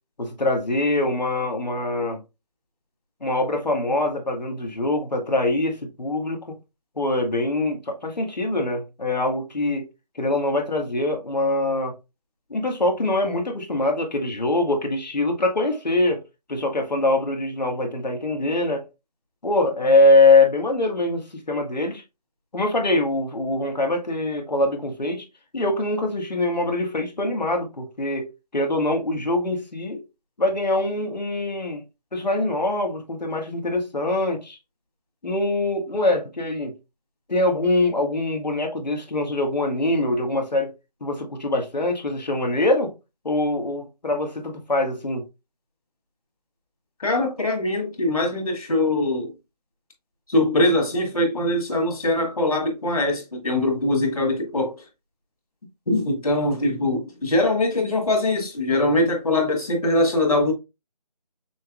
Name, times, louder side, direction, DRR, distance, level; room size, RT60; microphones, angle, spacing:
voice 1, 0.2-2.2 3.2-6.5 7.0-9.9 10.1-11.9 12.5-16.2 16.5-18.8 19.4-22.0 22.5-25.2 25.5-30.0 30.4-31.8 32.1-34.6 35.2-36.7 37.3-40.7 41.0-42.9 43.2-45.3, left 2 dB, 85° left, 1.6 m, -23 dB
voice 2, 47.0-49.3 50.3-54.7 55.9-60.5, left 1 dB, 55° left, 1.8 m, -22 dB
6.2 x 3.0 x 2.4 m
figure-of-eight pair, 170°, 21 cm